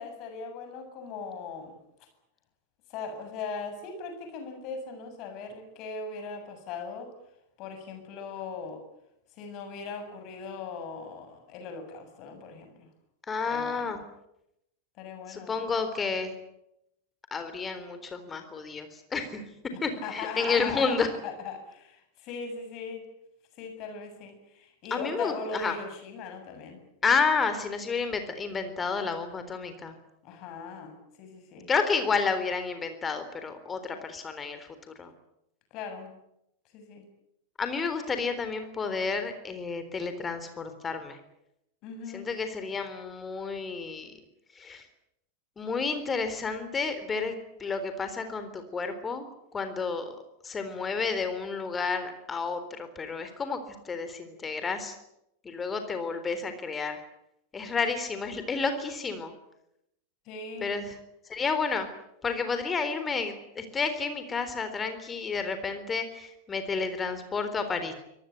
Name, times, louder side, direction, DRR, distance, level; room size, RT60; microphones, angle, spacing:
voice 1, 0.0-1.8 2.9-7.1 7.6-8.8 9.3-12.9 13.5-14.0 15.0-15.7 19.7-23.1 23.6-26.8 30.2-31.7 35.7-36.2 36.7-37.1 41.8-42.3 60.2-60.8, left 5 dB, 40° left, 6 dB, 7.6 m, -39 dB
voice 2, 13.3-14.0 15.3-16.3 17.3-19.4 19.8-21.1 24.9-25.7 27.0-29.9 31.7-34.7 35.0-35.1 37.6-41.2 42.1-44.1 44.6-44.8 45.6-47.3 47.6-49.3 49.5-50.2 50.4-53.6 53.8-54.9 55.4-57.0 57.5-59.3 60.6-60.9 61.3-61.9 62.2-67.9, left 5 dB, 20° left, 9 dB, 3.8 m, -30 dB
25.5 x 19.0 x 9.4 m, 0.82 s
figure-of-eight pair, 90°, 0 cm